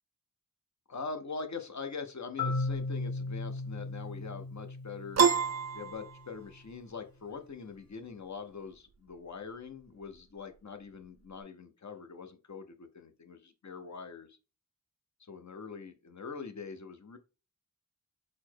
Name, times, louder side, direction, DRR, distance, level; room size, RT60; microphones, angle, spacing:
voice 1, 0.9-5.2 5.7-14.3 15.3-17.2, left 5 dB, 55° left, 7 dB, 0.7 m, -43 dB
Marimba xylophone, 2.4-6.3, left 3 dB, 80° left, 1.6 m, -36 dB
Piano, 5.2-6.7, right 6 dB, 50° right, 0.4 m, -27 dB
4.2 x 2.0 x 4.4 m, 0.32 s
wide cardioid pair, 50°, 35 cm